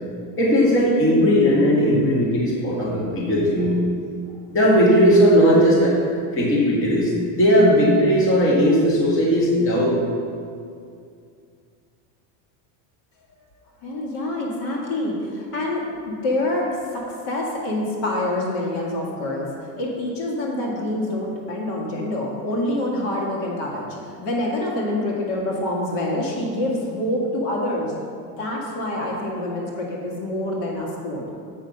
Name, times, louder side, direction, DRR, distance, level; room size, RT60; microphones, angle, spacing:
voice 1, 0.4-3.8 4.5-6.0 6.3-10.0, equal, 25° left, -5 dB, 1.9 m, -17 dB
voice 2, 13.8-27.9 28.4-31.2, left 1 dB, 70° left, -2 dB, 2.0 m, -26 dB
7.7 x 5.8 x 5.4 m, 2.3 s
cardioid pair, 145°, 47 cm